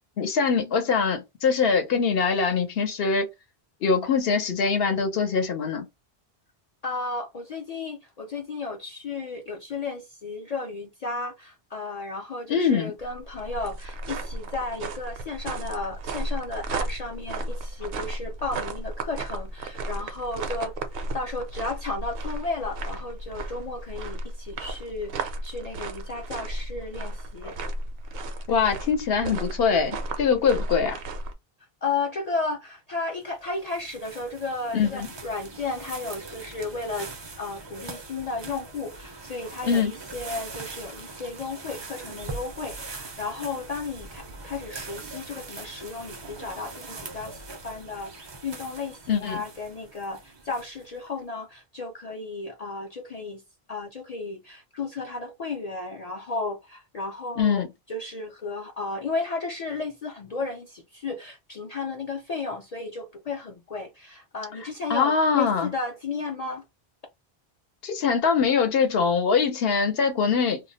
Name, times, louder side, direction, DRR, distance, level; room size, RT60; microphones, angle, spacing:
voice 1, 0.2-3.3 3.8-5.9 12.5-12.9 27.4-27.5 28.5-31.0 34.7-35.1 39.7-39.9 49.1-49.4 57.4-57.7 64.9-65.7 67.8-70.6, left 5 dB, 70° left, 0.8 m, -23 dB
voice 2, 6.8-27.5 31.8-37.1 37.4-53.4 53.7-66.6, left 3 dB, 50° left, 0.5 m, -34 dB
sound 1, 13.0-31.3, right 2 dB, 70° right, 0.8 m, -34 dB
sound 2, 33.2-51.0, right 3 dB, 40° right, 0.4 m, -41 dB
2.3 x 2.0 x 3.8 m
omnidirectional pair, 1.1 m